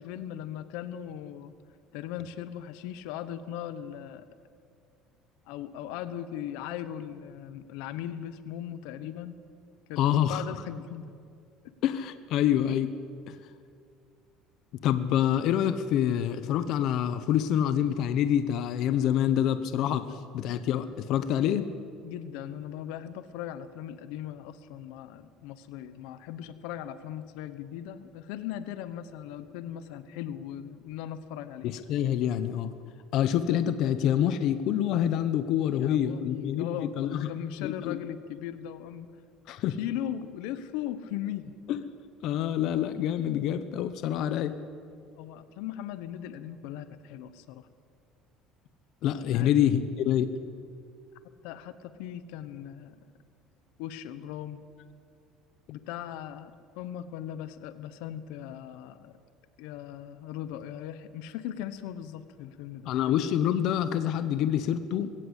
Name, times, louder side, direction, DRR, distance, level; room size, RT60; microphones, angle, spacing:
voice 1, 0.0-1.5 1.9-4.3 5.5-9.3 9.9-10.0 10.3-11.0 11.6-11.7 20.0-20.1 22.0-31.7 35.8-39.1 39.8-41.6 45.2-47.7 49.3-49.5 51.4-53.1 53.8-54.6 55.7-59.2 59.6-62.9, left 11 dB, 85° left, 12 dB, 1.1 m, -38 dB
voice 2, 10.0-10.4 11.8-12.9 13.3-13.4 14.8-20.0 20.3-21.7 31.6-32.7 33.1-37.3 37.6-38.0 39.5-39.8 41.7-41.8 42.2-44.5 49.0-50.3 62.9-65.1, left 10 dB, 60° left, 11 dB, 1.0 m, -26 dB
21.5 x 16.5 x 8.3 m, 2.4 s
cardioid pair, 135°, 0 cm